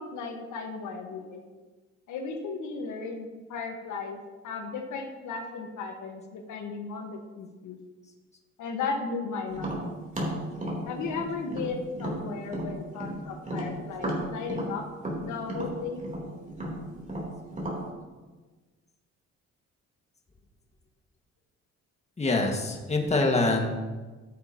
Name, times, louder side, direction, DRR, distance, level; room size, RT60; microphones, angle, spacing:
voice 1, 0.0-1.4 2.1-7.8 8.6-9.9 10.8-14.9 15.2-16.0, left 4 dB, 85° left, 3 dB, 1.4 m, -35 dB
Tap, 9.5-13.2 13.4-17.8, right 1 dB, 25° right, 3.3 m, -34 dB
voice 2, 22.2-23.7, left 2 dB, 20° left, 1 dB, 1.7 m, -25 dB
14.5 x 7.9 x 2.9 m, 1.3 s
cardioid pair, 90°, 30 cm